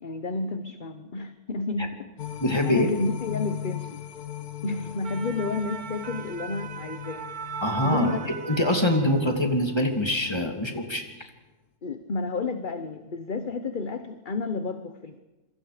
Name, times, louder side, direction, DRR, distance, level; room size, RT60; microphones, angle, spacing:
voice 1, 0.0-2.3 2.6-4.0 4.6-7.3 7.8-8.3 11.8-15.2, left 3 dB, 40° left, 8 dB, 1.0 m, -31 dB
sound 1, 2.2-10.6 11.0-11.1, left 12 dB, 75° left, 1.6 m, -39 dB
voice 2, 2.4-2.9 7.6-8.1 8.5-11.0, left 1 dB, 15° left, 4 dB, 2.6 m, -24 dB
sound 2, 4.8-9.6 9.9-10.2, right 7 dB, 70° right, 1.6 m, -38 dB
27.0 x 23.5 x 5.0 m, 1.1 s
omnidirectional pair, 1.6 m